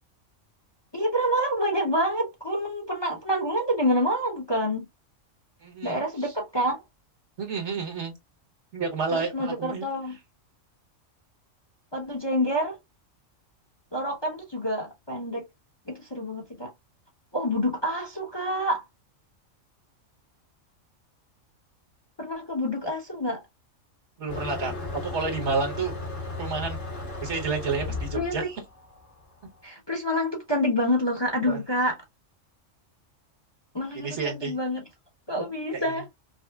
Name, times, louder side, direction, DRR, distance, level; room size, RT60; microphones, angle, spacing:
voice 1, 0.9-4.9 5.8-6.8 9.1-10.2 11.9-12.8 13.9-15.4 15.9-16.7 17.3-18.8 22.2-23.4 28.1-28.5 29.6-32.0 33.7-34.8 35.3-36.0, equal, 25° left, 0.8 m, -27 dB
voice 2, 5.6-6.0 7.4-8.1 8.7-9.9 24.2-25.9 26.4-26.8 27.2-28.4 31.5-31.6 33.9-34.6 35.7-35.8, right 4 dB, 60° right, 1.4 m, -30 dB
Motor vehicle (road), 24.3-29.4, left 2 dB, 70° left, 2.1 m, -35 dB
5.2 x 2.0 x 2.3 m
omnidirectional pair, 1.4 m